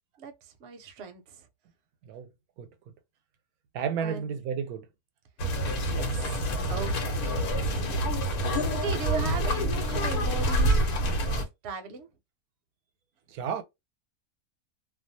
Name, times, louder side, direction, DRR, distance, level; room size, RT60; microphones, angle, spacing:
voice 1, 0.2-1.5 4.0-4.3 5.8-6.4 6.7-8.0 8.4-12.1, right 5 dB, 60° right, 0.8 m, -39 dB
voice 2, 3.7-4.9 13.3-13.6, right 7 dB, 85° right, 1.1 m, -32 dB
sound 1, 5.4-11.4, right 1 dB, 85° left, 1.3 m, -27 dB
2.5 x 2.3 x 2.6 m
omnidirectional pair, 1.5 m